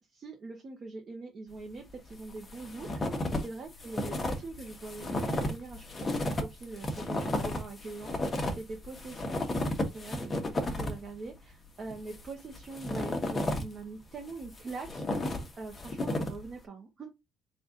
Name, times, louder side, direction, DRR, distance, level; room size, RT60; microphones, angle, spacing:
voice 1, 0.2-17.1, right 3 dB, 35° right, 2 dB, 0.8 m, -43 dB
sound 1, 2.1-3.5 3.7-11.1 11.9-13.8 14.3-16.5, left 1 dB, 20° left, 0.9 m, -33 dB
4.0 x 2.4 x 3.7 m, 0.21 s
cardioid pair, 150°, 0 cm